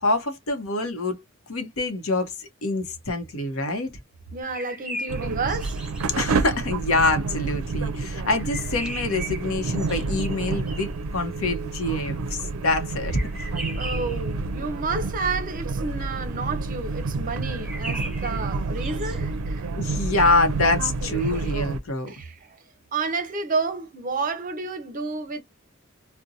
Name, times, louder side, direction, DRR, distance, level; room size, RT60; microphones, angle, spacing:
voice 1, 0.0-1.2 1.5-4.0 6.2-13.5 19.8-22.1, left 2 dB, 85° left, 0.8 m, -25 dB
voice 2, 4.3-5.8 13.8-19.7 21.2-21.5 22.1-22.6 22.9-25.4, right 4 dB, 40° right, 0.6 m, -30 dB
sound 1, 4.4-6.1 8.4-11.0 13.1-14.3 17.4-19.2, right 1 dB, 5° right, 0.9 m, -38 dB
sound 2, 5.1-21.8, right 3 dB, 85° right, 0.4 m, -29 dB
2.5 x 2.1 x 2.7 m
head